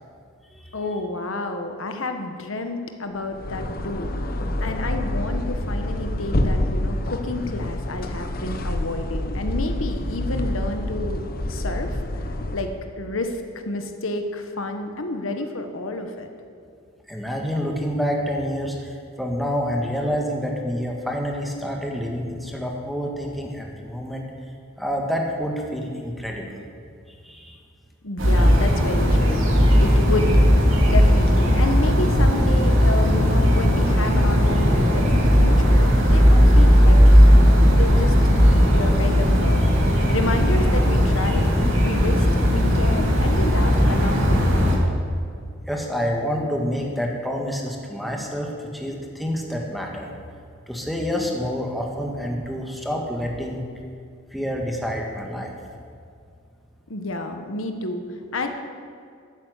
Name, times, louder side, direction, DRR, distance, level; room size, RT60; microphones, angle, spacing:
voice 1, 0.7-4.1 4.6-16.3 28.0-37.2 37.7-44.5 56.9-58.5, left 2 dB, 80° left, 6 dB, 1.3 m, -30 dB
sound 1, 3.2-12.8, left 1 dB, 45° left, 1.0 m, -27 dB
voice 2, 17.1-24.3 24.8-26.6 27.1-27.6 45.6-50.1 50.7-53.7 54.3-55.5, equal, ahead, 0 dB, 1.6 m, -28 dB
sound 2, 28.2-44.8, equal, 80° right, 2.6 m, -16 dB
13.0 x 8.7 x 8.2 m, 2.3 s
head